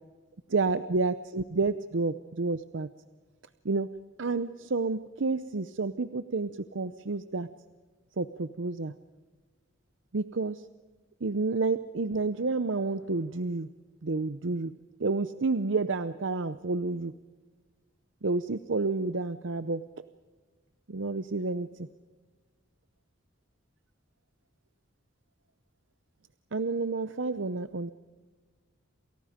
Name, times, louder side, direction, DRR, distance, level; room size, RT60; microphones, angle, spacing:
voice 1, 0.5-2.9 3.6-3.9 4.2-7.5 8.2-8.9 10.1-10.7 11.2-13.7 14.0-14.7 15.0-17.1 18.2-19.8 20.9-21.9 26.5-27.9, right 3 dB, 75° right, 13 dB, 0.7 m, -30 dB
28.5 x 28.0 x 5.2 m, 1.4 s
head